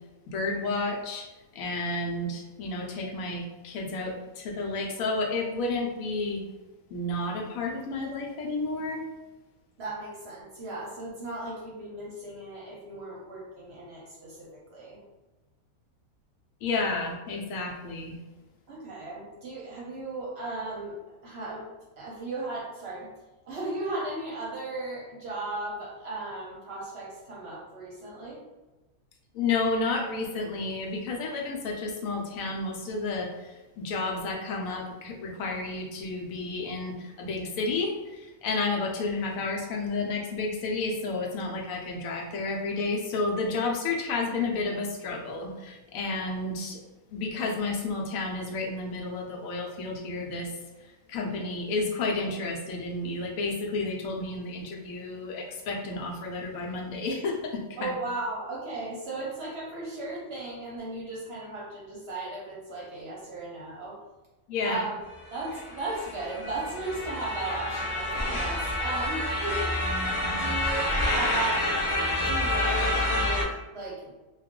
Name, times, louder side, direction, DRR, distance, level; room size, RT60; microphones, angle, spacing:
voice 1, 0.3-1.3 1.5-6.4 6.9-9.1 16.6-18.2 29.3-46.8 47.1-50.5 51.1-57.9 64.5-64.8 70.2-70.6, left 3 dB, 75° left, 0 dB, 1.0 m, -31 dB
voice 2, 9.8-15.0 18.7-20.9 21.2-21.7 22.0-23.1 23.4-28.4 57.8-64.0 64.6-64.9 65.3-74.1, right 2 dB, 55° right, -4 dB, 0.8 m, -36 dB
sound 1, 65.3-73.4, left 1 dB, 35° left, 0.5 m, -28 dB
2.4 x 2.3 x 3.5 m, 1.1 s
omnidirectional pair, 1.5 m